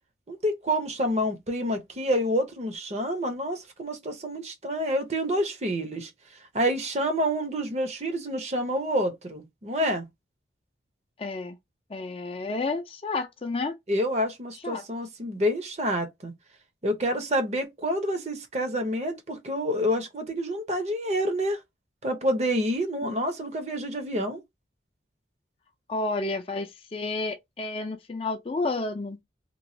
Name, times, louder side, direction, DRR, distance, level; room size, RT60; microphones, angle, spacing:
voice 1, 0.3-6.1 6.5-10.1 13.9-16.3 16.8-21.6 22.0-24.4, equal, 35° right, 0.7 m, -28 dB
voice 2, 11.2-11.6 11.9-13.8 14.6-14.8 23.0-23.1 25.9-29.2, left 3 dB, 30° left, 0.4 m, -31 dB
3.0 x 2.3 x 2.6 m
head